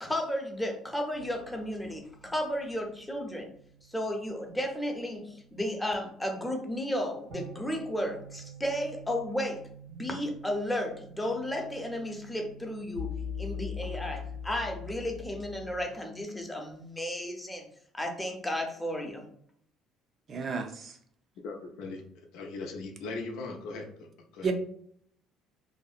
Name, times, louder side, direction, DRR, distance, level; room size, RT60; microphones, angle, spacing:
voice 1, 0.0-3.5 3.9-13.1 13.4-17.7 17.9-19.3, left 1 dB, 10° left, 2 dB, 0.6 m, -33 dB
sound 1, 1.1-15.8, left 4 dB, 85° right, 1.3 m, -45 dB
voice 2, 20.3-20.9 24.4-24.5, right 5 dB, 45° right, 5 dB, 0.4 m, -31 dB
voice 3, 21.4-24.5, left 3 dB, 80° left, 2 dB, 0.5 m, -39 dB
2.6 x 2.0 x 2.4 m, 0.64 s
supercardioid pair, 95°, 0 cm